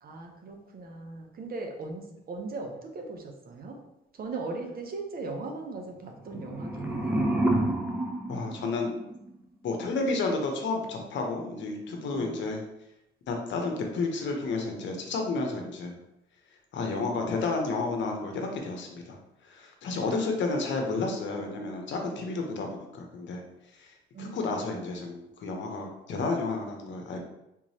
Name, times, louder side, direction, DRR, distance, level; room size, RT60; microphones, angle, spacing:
voice 1, 0.0-3.8 4.1-7.4 12.1-12.4 24.1-24.4, right 3 dB, 50° right, 3 dB, 0.7 m, -38 dB
sound 1, 6.2-9.3, right 1 dB, 10° right, 0.6 m, -29 dB
voice 2, 8.3-8.9 9.6-12.6 13.3-16.0 16.7-19.2 19.4-23.4 23.7-27.2, left 3 dB, 65° left, 2 dB, 0.8 m, -31 dB
3.7 x 3.0 x 2.8 m, 0.86 s
cardioid pair, 90°, 20 cm